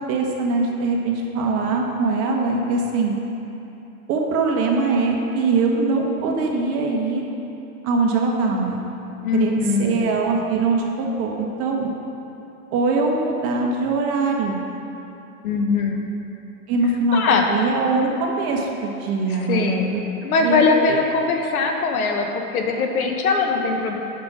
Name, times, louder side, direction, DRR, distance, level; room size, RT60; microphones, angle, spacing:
voice 1, 0.1-3.1 4.1-7.2 7.8-8.8 9.3-11.9 12.7-14.6 16.7-17.2 17.5-20.0 20.4-21.0, right 3 dB, 30° right, 0 dB, 1.1 m, -22 dB
voice 2, 9.2-10.0 15.4-16.0 17.1-17.5 19.3-24.0, left 4 dB, 75° left, 3 dB, 1.2 m, -21 dB
7.3 x 6.0 x 6.2 m, 2.9 s
hypercardioid pair, 130°, 44 cm